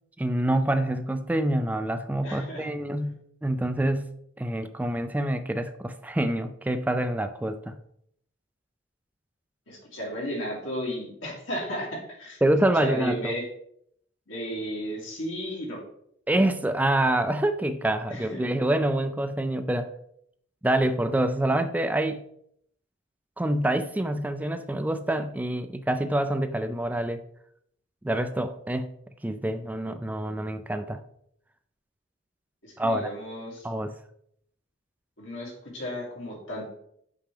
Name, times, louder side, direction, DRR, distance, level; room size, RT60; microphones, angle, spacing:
voice 1, 0.2-4.0 4.4-7.8 12.4-13.4 16.3-19.9 20.6-22.2 23.4-27.2 28.0-28.9 29.2-31.0 32.8-33.1 33.6-33.9, right 1 dB, 10° right, 8 dB, 0.3 m, -26 dB
voice 2, 2.2-2.7 9.7-12.4 12.8-13.4 14.3-15.8 18.1-18.4 32.6-33.7 35.2-36.7, equal, 85° left, -3 dB, 2.5 m, -34 dB
6.0 x 5.6 x 3.4 m, 0.70 s
head